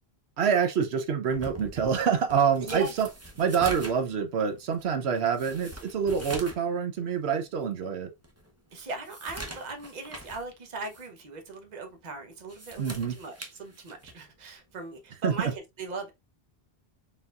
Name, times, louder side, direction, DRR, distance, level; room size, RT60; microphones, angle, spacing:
voice 1, 0.4-3.1 3.4-8.1 12.8-13.2 15.2-15.5, right 7 dB, 85° right, 1.0 m, -26 dB
sound 1, 1.3-6.7 7.0-7.1 7.7-7.8 8.2-10.5 10.8-11.1 12.3-14.3 15.3-15.6, right 1 dB, 15° right, 0.7 m, -43 dB
voice 2, 2.6-2.9 8.7-16.1, right 3 dB, 45° right, 1.0 m, -39 dB
4.2 x 3.8 x 2.4 m
omnidirectional pair, 1.0 m